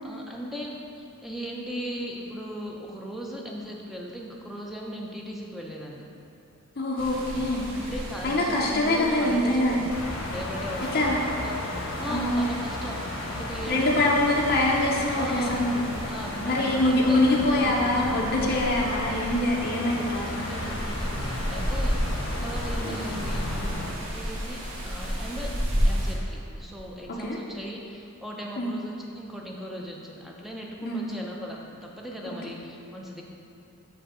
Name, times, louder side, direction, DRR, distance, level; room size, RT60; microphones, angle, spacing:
voice 1, 0.0-6.0 7.7-14.1 15.1-15.6 16.0-18.1 20.5-22.0 22.4-25.5 25.8-33.2, equal, ahead, -2 dB, 0.5 m, -38 dB
voice 2, 6.8-7.7 8.2-9.9 10.9-11.2 12.0-12.5 13.7-15.8 16.4-20.5 22.8-23.1 27.1-27.4 28.6-28.7 30.8-31.1 32.3-32.4, left 1 dB, 45° left, -3 dB, 0.6 m, -24 dB
sound 1, 7.0-26.1, equal, 65° right, 1.3 m, -33 dB
sound 2, 9.9-23.9, left 2 dB, 75° left, 0.8 m, -34 dB
7.6 x 2.7 x 4.9 m, 2.7 s
head